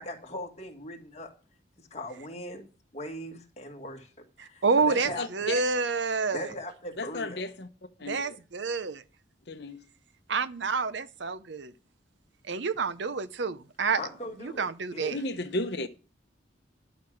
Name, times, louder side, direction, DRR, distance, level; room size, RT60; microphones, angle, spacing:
voice 1, 0.0-1.3 1.8-2.7 2.9-4.1 4.4-5.2 6.3-7.4 14.0-15.1, left 1 dB, 35° left, 1.9 m, -39 dB
voice 2, 4.4-6.5 8.1-9.0 10.3-11.7 12.5-14.0 14.4-15.2, right 4 dB, 65° right, 0.6 m, -28 dB
voice 3, 5.2-5.6 7.0-7.7 8.0-8.4 9.5-9.8 15.1-15.9, left 2 dB, 60° left, 0.9 m, -34 dB
11.5 x 6.1 x 6.3 m
head